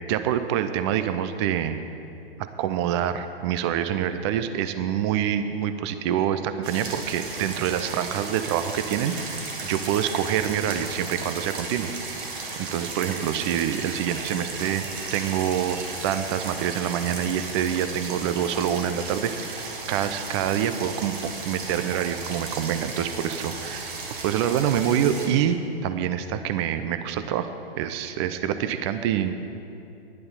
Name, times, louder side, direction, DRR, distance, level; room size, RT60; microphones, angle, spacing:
voice 1, 0.1-1.8 2.6-11.9 12.3-15.8 16.0-19.6 19.9-24.0 24.2-25.6 25.8-29.3, right 9 dB, 30° right, 10 dB, 0.5 m, -26 dB
sound 1, 6.6-25.3, right 3 dB, 55° right, 2.0 m, -35 dB
11.0 x 9.3 x 5.5 m, 2.6 s
figure-of-eight pair, 120°, 31 cm